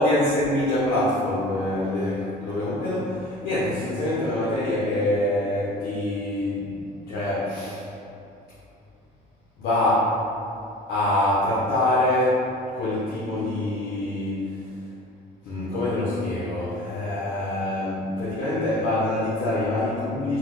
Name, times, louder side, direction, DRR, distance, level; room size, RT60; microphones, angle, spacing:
voice 1, 0.0-7.9 9.6-10.2 10.9-14.7 15.4-20.4, left 1 dB, 70° left, -9 dB, 0.7 m, -25 dB
3.7 x 2.1 x 2.9 m, 2.7 s
cardioid pair, 110°, 17 cm